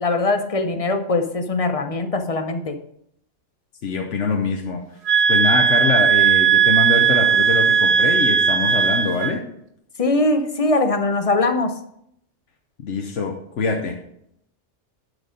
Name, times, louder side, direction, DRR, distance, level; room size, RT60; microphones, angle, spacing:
voice 1, 0.0-2.8 10.0-11.7, left 2 dB, 35° left, 7 dB, 0.7 m, -21 dB
voice 2, 3.8-4.8 5.3-9.4 12.8-13.9, left 4 dB, 70° left, 2 dB, 1.2 m, -24 dB
sound 1, 5.0-9.4, right 8 dB, 45° right, 0.5 m, -17 dB
11.0 x 4.9 x 5.1 m, 0.74 s
omnidirectional pair, 1.3 m